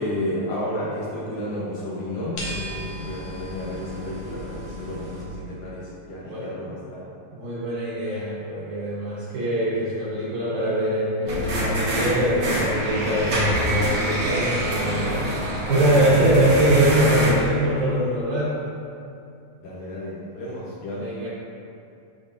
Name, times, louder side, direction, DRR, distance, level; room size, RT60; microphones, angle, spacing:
voice 1, 0.0-7.0 19.6-21.1, left 1 dB, 85° left, -7 dB, 1.3 m, -32 dB
sound 1, 2.4-5.2, equal, 60° left, 1.9 m, -35 dB
voice 2, 6.3-6.8 7.3-18.5 21.0-21.3, right 1 dB, 65° right, -8 dB, 2.2 m, -23 dB
sound 2, 11.3-17.4, equal, 85° right, 1.1 m, -25 dB
12.5 x 4.4 x 2.6 m, 2.5 s
omnidirectional pair, 4.3 m